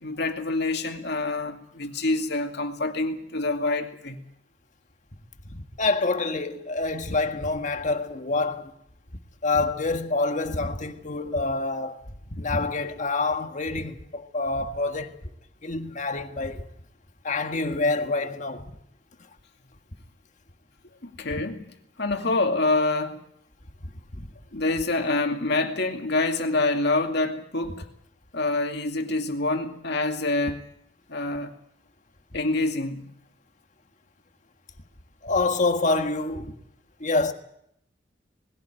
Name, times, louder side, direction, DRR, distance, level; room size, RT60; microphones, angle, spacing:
voice 1, 0.0-4.2 21.0-21.7 22.0-23.2 24.5-27.9 28.3-30.6 31.1-31.5 32.3-33.0, left 2 dB, 65° left, 2.5 m, -26 dB
voice 2, 5.5-8.7 9.4-12.0 12.3-15.2 15.6-16.6 17.2-18.7 24.2-24.3 35.2-36.5 37.0-37.3, left 3 dB, 45° left, 1.7 m, -27 dB
20.5 x 16.5 x 9.1 m
head